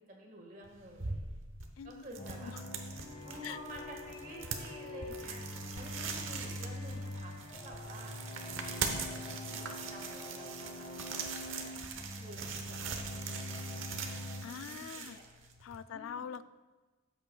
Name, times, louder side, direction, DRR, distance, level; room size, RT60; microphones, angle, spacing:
voice 1, 0.1-1.3 1.8-2.5 3.2-5.4 5.7-8.1 8.4-9.3 9.5-11.3 11.5-11.7 12.1-14.1 14.4-15.2 15.9-16.3, equal, 40° right, 0 dB, 1.6 m, -50 dB
sound 1, 0.6-15.8, right 5 dB, 75° right, 0.9 m, -42 dB
voice 2, 1.8-2.7 3.4-3.6 14.4-15.2 15.6-16.4, left 8 dB, 80° left, 14 dB, 0.3 m, -44 dB
sound 2, 2.2-14.4, left 1 dB, 30° left, 1.4 m, -44 dB
13.0 x 8.9 x 2.3 m, 1.3 s
head